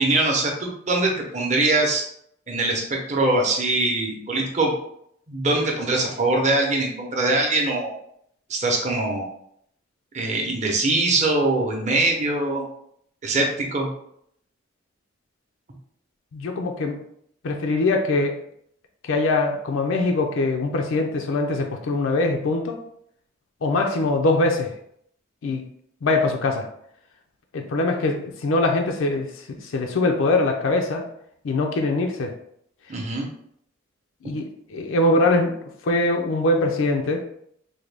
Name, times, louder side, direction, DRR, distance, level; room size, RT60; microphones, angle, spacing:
voice 1, 0.0-2.0 2.5-4.7 5.3-7.9 8.5-9.3 10.1-12.6 13.2-13.9 32.9-33.3, right 2 dB, 35° right, 0 dB, 0.6 m, -22 dB
voice 2, 16.3-17.0 17.4-18.4 19.0-22.8 23.6-24.7 25.4-25.6 26.0-26.7 27.5-31.1 31.4-32.3 34.2-35.6 35.8-37.3, left 2 dB, 75° left, 3 dB, 0.4 m, -22 dB
3.6 x 2.2 x 3.3 m, 0.70 s
head